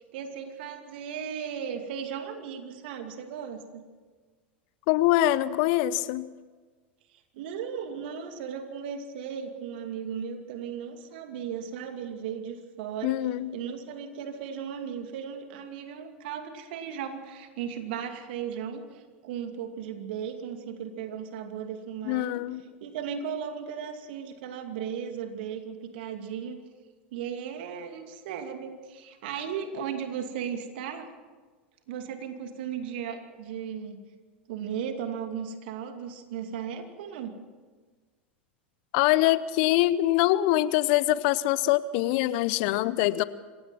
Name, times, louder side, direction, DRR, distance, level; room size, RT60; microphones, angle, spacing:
voice 1, 0.0-3.8 7.3-13.2 13.5-22.4 22.8-26.6 27.1-31.1 31.9-34.0 34.5-37.4, right 7 dB, 60° right, 6 dB, 2.5 m, -36 dB
voice 2, 4.9-6.3 13.0-13.5 22.0-22.6 38.9-43.2, left 15 dB, 55° left, 17 dB, 0.8 m, -24 dB
26.5 x 16.5 x 5.9 m, 1.4 s
figure-of-eight pair, 90°, 6 cm